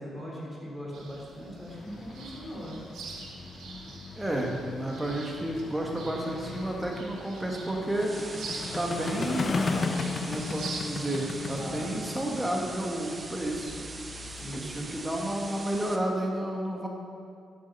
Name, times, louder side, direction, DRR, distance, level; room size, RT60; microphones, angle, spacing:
voice 1, 0.0-2.8 11.6-11.9 14.3-14.9, equal, 10° left, -4 dB, 3.2 m, -40 dB
sound 1, 0.9-12.5, right 4 dB, 85° right, 1.4 m, -45 dB
sound 2, 1.7-15.5, left 3 dB, 40° left, 0.6 m, -37 dB
voice 2, 4.2-8.4 8.7-9.8 10.3-13.8 14.5-16.9, right 1 dB, 10° right, 0 dB, 1.6 m, -31 dB
sound 3, 7.9-16.0, right 3 dB, 25° right, 0.9 m, -42 dB
11.0 x 7.7 x 5.5 m, 2.3 s
cardioid pair, 120°, 0 cm